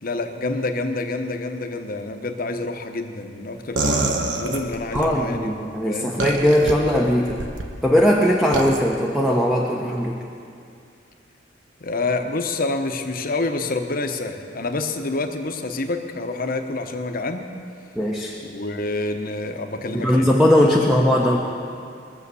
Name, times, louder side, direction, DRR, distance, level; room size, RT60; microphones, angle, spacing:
voice 1, 0.0-5.6 5.8-6.1 11.8-17.5 18.4-20.3 20.8-20.9, left 2 dB, 50° left, 6 dB, 1.0 m, -27 dB
sound 1, 3.8-5.1 6.2-6.7 7.3-7.7 8.5-8.8, right 2 dB, 70° right, 1.3 m, -24 dB
voice 2, 4.9-7.4 7.8-10.2 18.0-18.3 19.9-21.4, left 1 dB, ahead, -2 dB, 1.0 m, -19 dB
22.0 x 7.3 x 6.9 m, 2.4 s
head